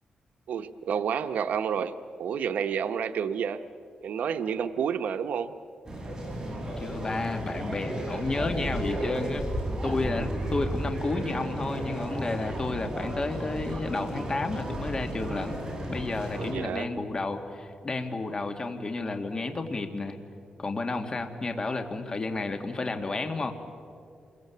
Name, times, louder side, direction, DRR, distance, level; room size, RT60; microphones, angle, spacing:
voice 1, 0.5-3.6 4.0-5.5 16.4-16.9, right 7 dB, 90° right, 10 dB, 0.9 m, -30 dB
sound 1, 5.8-16.5, right 1 dB, 25° right, 7.1 m, -33 dB
voice 2, 6.8-9.4 9.8-15.6 15.9-20.2 20.6-23.5, left 3 dB, 30° left, 5 dB, 2.1 m, -31 dB
28.5 x 22.5 x 8.4 m, 2.4 s
wide cardioid pair, 115°, 3 cm